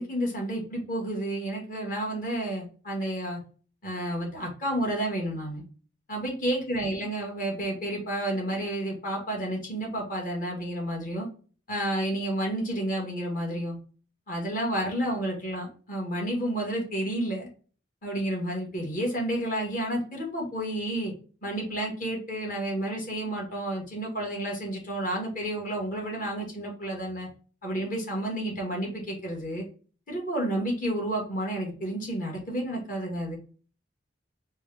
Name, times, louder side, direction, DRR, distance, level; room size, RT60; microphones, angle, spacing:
voice 1, 0.0-3.4 3.8-5.6 6.1-11.3 11.7-13.8 14.3-17.5 18.0-21.1 21.4-27.3 27.6-29.6 30.1-33.4, right 1 dB, 45° left, -1 dB, 1.7 m, -30 dB
4.4 x 2.3 x 3.3 m, 0.40 s
head